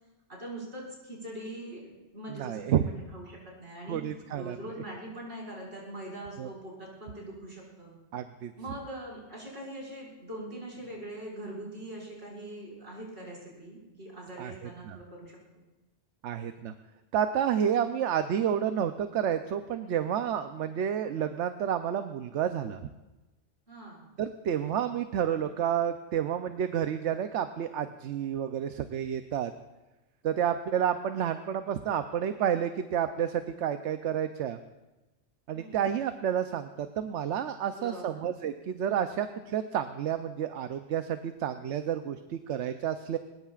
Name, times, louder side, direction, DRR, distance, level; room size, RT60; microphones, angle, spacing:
voice 1, 0.3-4.0 4.3-8.0 8.6-15.4 23.7-24.1 35.5-35.9 37.7-38.2, right 1 dB, 65° right, -5 dB, 5.9 m, -42 dB
voice 2, 2.3-2.9 3.9-4.6 6.4-6.5 8.1-8.5 14.4-15.0 16.2-16.7 17.1-22.8 24.2-29.5 30.2-34.6 35.5-43.2, right 9 dB, 80° right, 8 dB, 1.0 m, -30 dB
21.5 x 20.0 x 2.4 m, 1.1 s
omnidirectional pair, 1.2 m